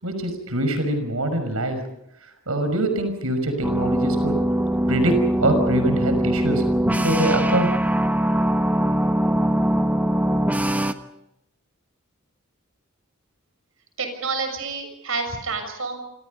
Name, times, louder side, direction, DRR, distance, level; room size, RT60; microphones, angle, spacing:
voice 1, 0.0-1.8 2.5-4.4 4.9-7.7, right 1 dB, 85° right, 8 dB, 5.9 m, -24 dB
sound 1, 3.6-10.9, right 1 dB, 5° right, 1.2 m, -22 dB
voice 2, 14.0-16.0, right 4 dB, 70° right, 7 dB, 6.8 m, -28 dB
28.0 x 27.0 x 5.4 m, 0.80 s
head